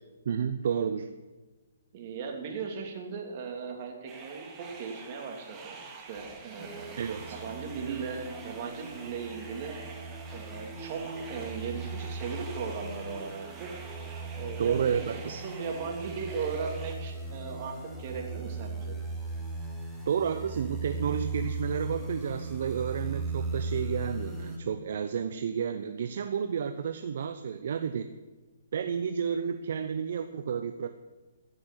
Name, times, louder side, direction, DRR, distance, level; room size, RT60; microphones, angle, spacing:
voice 1, 0.3-1.1 7.0-7.4 14.6-15.4 20.1-28.1 28.7-30.9, right 7 dB, 60° right, 9 dB, 0.7 m, -31 dB
voice 2, 1.9-5.8 6.1-7.0 7.4-9.8 10.3-13.7 14.4-15.1 15.4-19.0, right 5 dB, 40° right, 2 dB, 2.8 m, -37 dB
sound 1, 4.1-17.0, right 4 dB, 20° right, 2.1 m, -47 dB
sound 2, 6.6-24.6, right 3 dB, ahead, 2.0 m, -38 dB
14.0 x 6.2 x 8.1 m, 1.2 s
hypercardioid pair, 135°, 0 cm